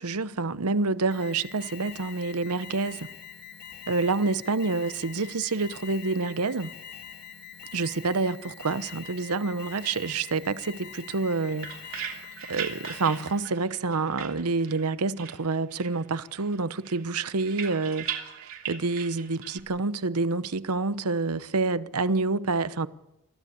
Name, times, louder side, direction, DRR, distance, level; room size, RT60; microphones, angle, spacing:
voice 1, 0.0-3.1 3.9-6.7 7.7-12.2 12.5-18.1 18.7-22.9, right 3 dB, 80° right, 0.9 m, -28 dB
Alarm, 1.1-13.5, left 7 dB, 45° left, 3.8 m, -44 dB
sound 1, 11.2-14.9 15.2-16.1 16.3-19.6, right 8 dB, 60° right, 3.2 m, -39 dB
23.5 x 15.5 x 8.6 m
head